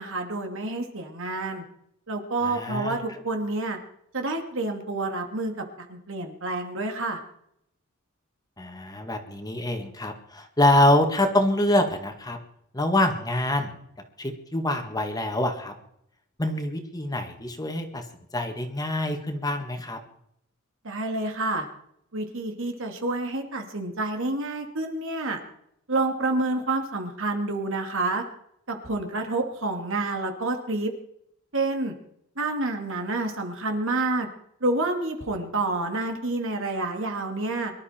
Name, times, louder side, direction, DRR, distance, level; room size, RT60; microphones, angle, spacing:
voice 1, 0.0-1.6 2.1-3.8 4.1-5.5 5.9-7.2 20.8-21.7 22.1-25.4 25.9-28.2 28.7-30.9 31.5-32.0 32.4-34.3 34.6-37.7, right 2 dB, 65° right, 4 dB, 2.7 m, -28 dB
voice 2, 2.4-3.0 8.6-12.4 12.7-13.8 14.2-15.7 16.4-18.0 18.3-20.0, left 1 dB, 20° left, 5 dB, 1.8 m, -25 dB
24.0 x 12.5 x 4.5 m, 0.74 s
head